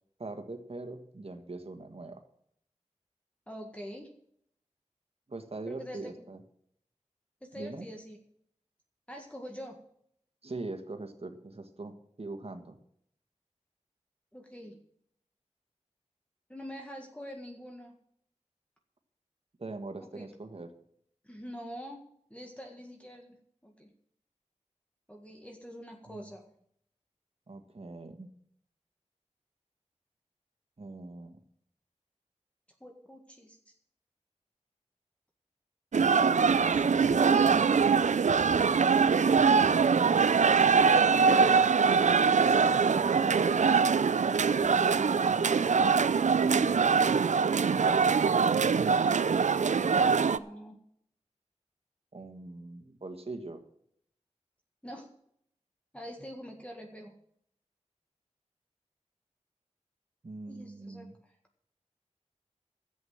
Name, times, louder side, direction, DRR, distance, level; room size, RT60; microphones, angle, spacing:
voice 1, 0.2-2.2 5.3-6.4 7.5-7.9 10.4-12.8 19.6-20.7 26.1-26.3 27.5-28.3 30.8-31.4 40.1-41.0 42.7-43.7 46.1-47.0 52.1-53.6 60.2-61.2, right 2 dB, 55° right, 6 dB, 1.7 m, -42 dB
voice 2, 3.5-4.1 5.7-6.1 7.4-8.2 9.1-9.8 14.3-14.8 16.5-17.9 20.0-20.3 21.2-22.0 22.3-23.4 23.6-23.9 25.1-26.5 32.8-33.7 44.5-45.5 50.2-50.8 54.8-55.1 55.9-57.1 60.5-61.3, equal, 10° left, 1 dB, 1.8 m, -45 dB
sound 1, 35.9-50.4, right 5 dB, 85° right, 0.5 m, -23 dB
12.0 x 8.2 x 7.3 m, 0.69 s
wide cardioid pair, 60°, 12 cm